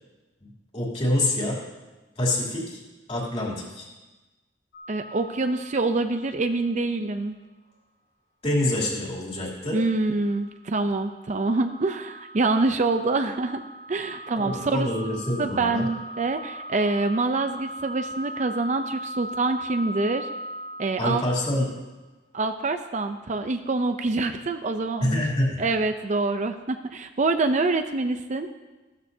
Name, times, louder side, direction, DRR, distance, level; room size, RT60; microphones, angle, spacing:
voice 1, 0.4-1.6 2.2-2.8 3.1-3.9 8.4-9.8 14.3-15.9 21.0-21.7 25.0-25.6, left 1 dB, 35° left, -4 dB, 3.0 m, -26 dB
sound 1, 4.7-6.6 7.0-7.1 9.8-21.7, right 1 dB, 80° left, 2.8 m, -39 dB
voice 2, 4.9-7.3 9.7-13.6 13.9-14.9 15.4-20.3 20.8-21.2 22.3-25.2 25.6-28.5, right 3 dB, 40° right, 7 dB, 0.5 m, -26 dB
15.0 x 13.0 x 2.8 m, 1.2 s
head